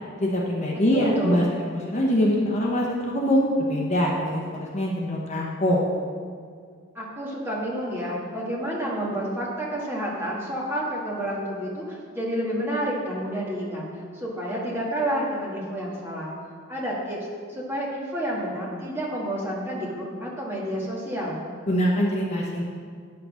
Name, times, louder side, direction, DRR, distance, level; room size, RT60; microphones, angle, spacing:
voice 1, 0.2-5.8 21.7-22.6, equal, 35° left, -2 dB, 1.0 m, -23 dB
voice 2, 0.9-1.5 7.0-13.9 14.1-16.3 16.7-21.4, equal, 10° right, -5 dB, 1.9 m, -29 dB
9.4 x 5.9 x 6.4 m, 2.1 s
head